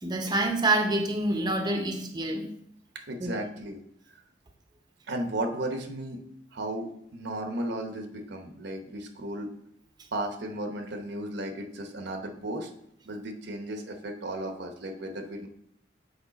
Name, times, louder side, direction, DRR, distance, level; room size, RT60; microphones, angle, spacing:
voice 1, 0.0-2.5 3.2-3.3, right 2 dB, 25° right, 4 dB, 0.8 m, -27 dB
voice 2, 2.9-3.8 4.1-4.2 5.1-6.2 6.5-9.5 10.1-12.7 13.0-15.5, right 1 dB, 65° right, 5 dB, 0.9 m, -35 dB
7.2 x 4.7 x 4.0 m, 0.72 s
head